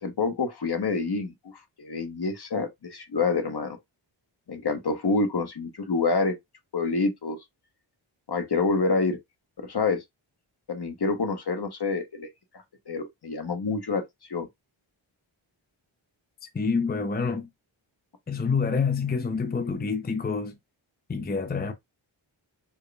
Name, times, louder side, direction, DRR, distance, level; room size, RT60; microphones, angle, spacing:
voice 1, 0.0-3.8 4.5-6.3 6.7-7.4 8.3-9.2 9.7-10.0 10.7-12.3 12.9-14.0 14.3-14.5, left 4 dB, 55° left, 1.1 m, -27 dB
voice 2, 16.4-17.5 18.3-20.6 21.1-21.7, left 5 dB, 20° left, 0.6 m, -27 dB
4.6 x 2.2 x 3.3 m
cardioid pair, 55°, 48 cm